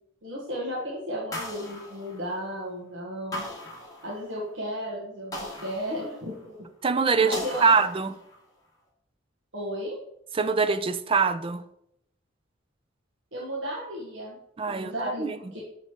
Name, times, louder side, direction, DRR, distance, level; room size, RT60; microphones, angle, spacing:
voice 1, 0.2-3.5 4.0-6.6 7.2-7.7 9.5-10.0 13.3-14.4 14.6-15.6, equal, 70° right, -5 dB, 1.3 m, -34 dB
sound 1, 1.3-2.7 3.3-4.5 5.3-6.6 7.3-8.5, left 1 dB, 20° left, 1.6 m, -39 dB
voice 2, 6.8-8.2 10.3-11.6 14.6-15.4, right 5 dB, 30° right, 11 dB, 0.4 m, -24 dB
6.7 x 4.5 x 4.3 m, 0.77 s
head